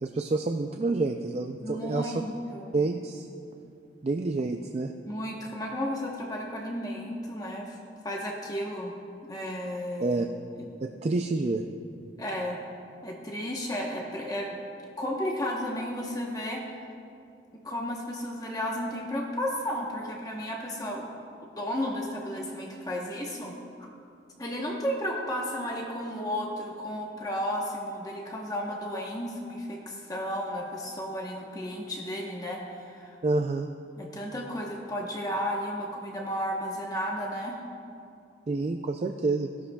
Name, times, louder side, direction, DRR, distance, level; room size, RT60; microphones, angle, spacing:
voice 1, 0.0-2.1 2.7-3.3 4.0-4.9 10.0-10.3 10.8-11.6 33.2-33.7 38.5-39.5, right 3 dB, 35° right, 5 dB, 0.3 m, -28 dB
voice 2, 1.6-2.8 5.1-7.8 8.0-8.9 9.2-10.2 10.6-10.7 12.2-12.6 13.0-14.6 15.0-16.6 17.6-21.2 21.6-23.9 24.4-33.2 34.0-37.6, equal, 20° left, -1 dB, 0.9 m, -33 dB
17.0 x 12.5 x 2.3 m, 2.5 s
head